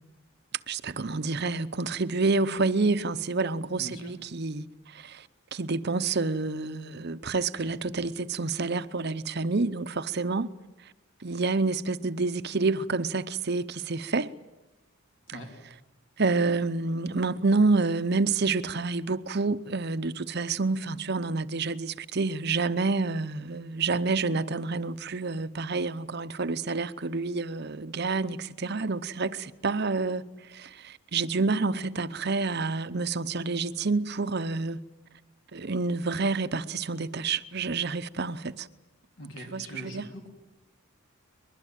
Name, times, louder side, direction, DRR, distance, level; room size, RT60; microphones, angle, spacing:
voice 1, 0.7-10.5 11.2-14.3 16.2-30.2 30.5-34.8 35.5-38.7 39.5-40.1, right 3 dB, 50° right, 0.7 m, -28 dB
voice 2, 3.8-4.1 15.3-15.5 39.2-40.3, equal, 60° left, 3.1 m, -42 dB
23.0 x 21.5 x 9.1 m
head